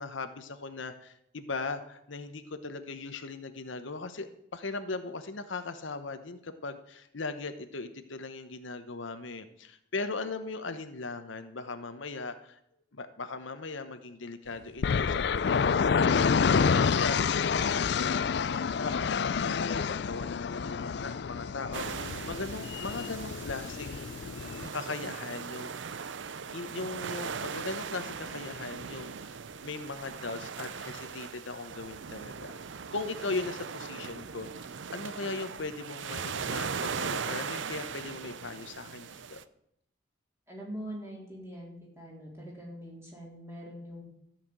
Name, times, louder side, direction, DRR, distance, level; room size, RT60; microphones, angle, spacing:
voice 1, 0.0-12.6 12.9-24.3 24.7-25.9 26.5-29.4 29.6-32.6 32.9-39.4, left 3 dB, 75° left, 9 dB, 0.9 m, -39 dB
sound 1, 14.8-24.7, left 6 dB, 55° left, 0.4 m, -28 dB
sound 2, 21.7-39.4, right 6 dB, 70° right, 0.6 m, -39 dB
voice 2, 40.5-44.0, equal, 15° right, -4 dB, 3.8 m, -43 dB
13.5 x 5.9 x 8.7 m, 0.74 s
head